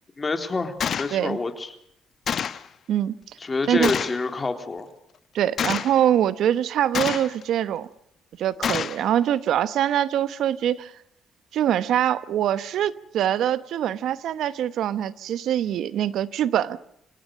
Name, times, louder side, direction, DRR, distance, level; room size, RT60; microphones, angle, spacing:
voice 1, 0.2-1.7 3.4-4.9, left 3 dB, 30° left, 3.8 m, -27 dB
Gunshot gunfire, 0.8-1.1 2.3-2.7 3.8-4.2 5.6-6.0 6.9-7.4 8.6-9.0, left 8 dB, 60° left, 1.2 m, -27 dB
voice 2, 2.9-3.3 3.7-3.9 5.3-7.9 8.4-10.9 11.5-16.8, right 10 dB, 75° right, 1.0 m, -24 dB
27.0 x 18.0 x 6.6 m
supercardioid pair, 70°, 0 cm